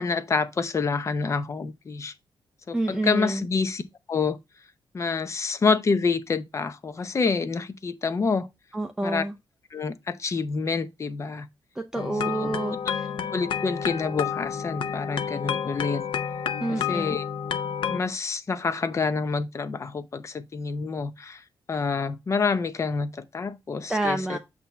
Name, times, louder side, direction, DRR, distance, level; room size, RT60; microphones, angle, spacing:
voice 1, 0.0-2.1 2.7-3.8 4.1-4.4 4.9-8.5 9.0-9.2 9.7-11.5 12.4-12.5 13.3-16.0 16.7-17.2 17.9-21.4 21.7-24.4, left 4 dB, 35° left, 0.7 m, -27 dB
voice 2, 2.7-3.5 8.7-9.3 11.8-13.1 16.6-17.1 23.9-24.4, right 2 dB, 5° right, 0.6 m, -28 dB
sound 1, 11.9-18.0, left 8 dB, 75° left, 0.6 m, -30 dB
8.2 x 2.8 x 5.6 m
wide cardioid pair, 150°, 9 cm